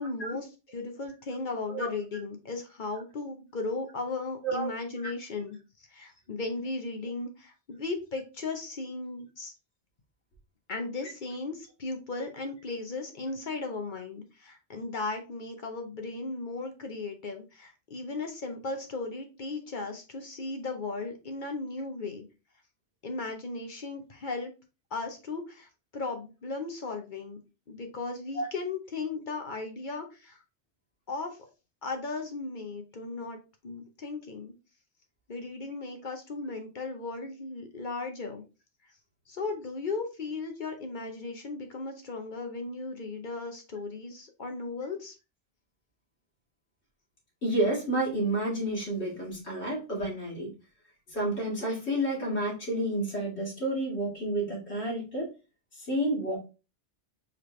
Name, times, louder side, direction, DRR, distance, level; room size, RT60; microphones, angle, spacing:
voice 1, 0.0-5.6 5.9-9.5 10.7-22.2 23.0-24.5 24.9-27.4 27.7-30.4 31.1-31.5 31.8-33.4 33.6-34.5 35.3-38.4 39.3-45.1, left 3 dB, 50° left, 5 dB, 0.8 m, -36 dB
voice 2, 47.4-50.5 51.1-55.3 55.7-56.4, right 1 dB, 70° left, -6 dB, 2.2 m, -30 dB
5.0 x 3.1 x 3.1 m, 0.30 s
omnidirectional pair, 1.2 m